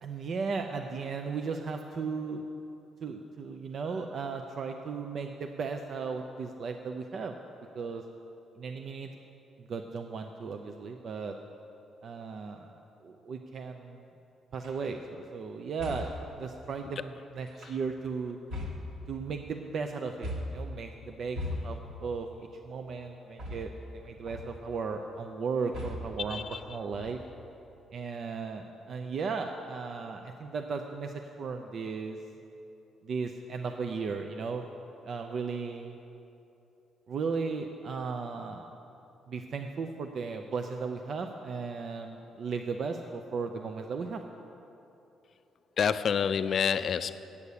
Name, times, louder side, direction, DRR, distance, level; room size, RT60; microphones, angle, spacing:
voice 1, 0.0-2.4 3.0-7.4 7.7-8.0 8.6-9.1 9.6-11.4 12.0-12.7 13.0-14.1 14.5-16.1 16.4-18.4 19.1-22.3 22.7-27.2 27.9-32.2 33.0-34.7 35.0-36.0 37.1-38.7 39.3-44.2, right 5 dB, 55° right, 4 dB, 0.5 m, -36 dB
sound 1, 14.6-14.9 15.8-16.3 17.5-18.0 18.5-19.4 20.2-20.7 21.4-22.0 23.4-24.0 24.3-24.7 25.7-26.3 26.9-27.4, left 1 dB, 80° right, 1.7 m, -38 dB
voice 2, 26.3-26.6 45.8-47.1, left 7 dB, 55° left, 13 dB, 0.4 m, -28 dB
8.4 x 8.1 x 6.8 m, 2.9 s
cardioid pair, 90°, 0 cm